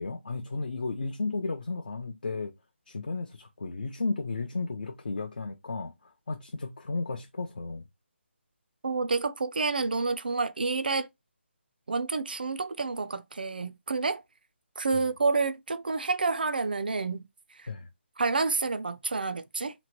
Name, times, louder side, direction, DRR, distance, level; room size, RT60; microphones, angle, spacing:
voice 1, 0.0-2.5 2.9-7.8 14.9-15.0 17.7-17.9, left 3 dB, 45° left, 0.4 m, -34 dB
voice 2, 8.8-11.1 11.9-14.2 14.8-17.2 17.6-17.7 18.2-19.7, right 4 dB, 50° right, 0.4 m, -29 dB
2.9 x 2.1 x 2.9 m
hypercardioid pair, 180°, 7 cm